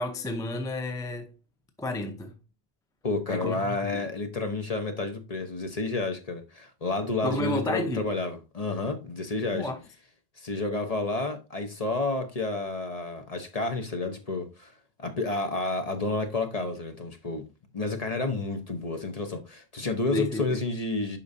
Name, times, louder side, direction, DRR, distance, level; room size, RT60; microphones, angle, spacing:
voice 1, 0.0-1.3 1.8-2.3 3.3-4.0 7.2-8.1 9.5-9.8 20.1-20.6, left 1 dB, 5° left, 0.6 m, -31 dB
voice 2, 3.0-9.7 10.4-14.7 15.0-17.4 17.7-21.2, left 3 dB, 40° left, 1.0 m, -30 dB
8.4 x 5.6 x 2.7 m
omnidirectional pair, 1.1 m